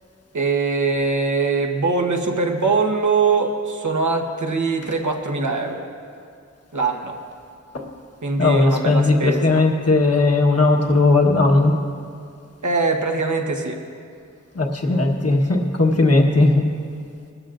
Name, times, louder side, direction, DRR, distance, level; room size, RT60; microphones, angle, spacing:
voice 1, 0.3-5.8 6.7-7.2 8.2-9.6 12.6-13.8, right 4 dB, 80° right, 2 dB, 1.3 m, -22 dB
voice 2, 8.4-11.7 14.5-16.6, left 2 dB, 55° left, 1 dB, 1.3 m, -17 dB
21.5 x 13.5 x 2.6 m, 2.4 s
wide cardioid pair, 55°, 30 cm